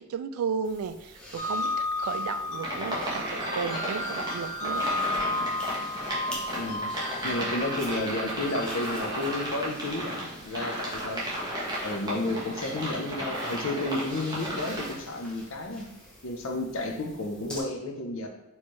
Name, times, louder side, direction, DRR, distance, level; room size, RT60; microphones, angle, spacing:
voice 1, 0.0-5.0, right 6 dB, 75° right, 12 dB, 0.3 m, -34 dB
sound 1, 0.6-17.6, left 1 dB, 5° left, 0.8 m, -48 dB
sound 2, 1.4-8.7, left 2 dB, 30° left, 1.5 m, -33 dB
sound 3, 2.6-14.9, equal, 20° right, 1.0 m, -34 dB
voice 2, 6.5-6.9 7.2-11.2 11.8-15.8 16.2-18.3, left 2 dB, 60° left, 3 dB, 0.6 m, -32 dB
4.3 x 3.2 x 3.1 m, 1.0 s
head